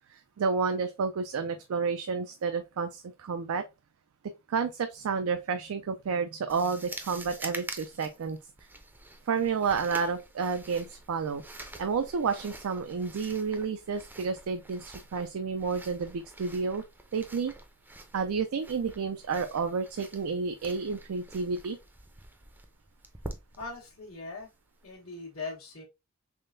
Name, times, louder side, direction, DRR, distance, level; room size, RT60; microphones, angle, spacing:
voice 1, 0.1-3.6 4.5-8.4 9.3-16.8 17.1-17.5 18.1-21.8, right 5 dB, 85° right, 0.4 m, -30 dB
sound 1, 6.5-24.9, right 2 dB, 10° right, 0.5 m, -47 dB
voice 2, 23.6-24.5 24.8-25.8, left 3 dB, 85° left, 1.1 m, -40 dB
3.6 x 3.2 x 2.5 m
head